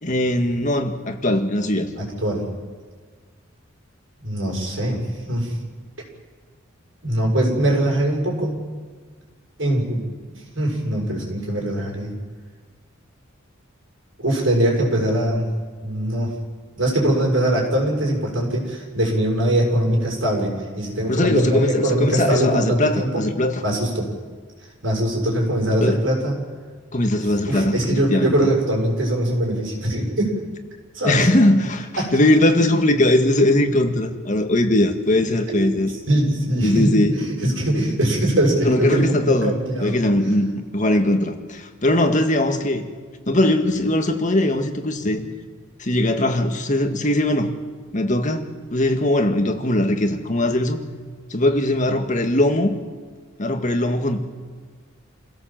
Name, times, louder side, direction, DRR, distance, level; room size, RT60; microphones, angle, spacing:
voice 1, 0.0-1.9 21.1-23.6 25.8-26.0 26.9-28.4 31.0-35.9 36.6-37.2 38.6-39.5 39.8-42.9 43.3-45.2 45.8-47.5 47.9-50.8 51.3-52.7 53.4-54.2, left 1 dB, 40° left, 5 dB, 1.9 m, -20 dB
voice 2, 2.0-2.5 4.2-5.0 5.3-5.6 7.0-8.6 9.6-10.0 10.6-12.1 14.2-15.5 15.8-16.3 16.8-23.2 23.6-24.1 24.8-26.4 27.5-30.4 30.9-31.3 32.0-32.2 35.5-40.0 45.1-45.2, right 1 dB, 70° right, -1 dB, 7.1 m, -22 dB
28.5 x 17.0 x 7.7 m, 1.5 s
head